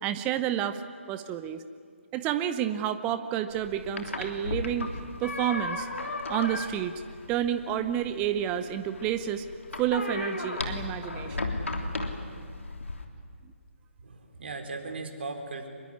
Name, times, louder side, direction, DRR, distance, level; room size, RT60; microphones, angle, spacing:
voice 1, 0.0-0.8 1.1-1.6 2.1-4.9 5.2-5.9 6.3-6.9 7.3-9.5 9.8-11.5, right 10 dB, 15° right, 11 dB, 0.8 m, -30 dB
sound 1, 3.5-13.0, left 2 dB, 70° left, 3.2 m, -35 dB
voice 2, 14.0-15.7, right 3 dB, 50° right, 4 dB, 4.1 m, -38 dB
25.0 x 22.0 x 9.8 m, 2.2 s
figure-of-eight pair, 140°, 7 cm